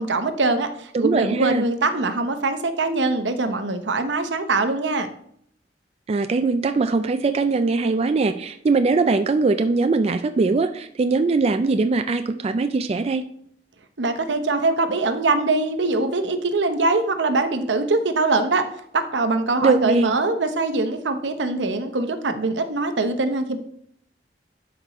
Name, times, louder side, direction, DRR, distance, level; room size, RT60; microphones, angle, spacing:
voice 1, 0.0-5.1 14.0-18.7 18.9-23.6, right 3 dB, 80° right, 8 dB, 0.8 m, -22 dB
voice 2, 0.9-1.6 6.1-13.2 19.6-20.1, right 3 dB, 35° right, 8 dB, 0.3 m, -21 dB
12.0 x 5.2 x 3.0 m, 0.68 s
head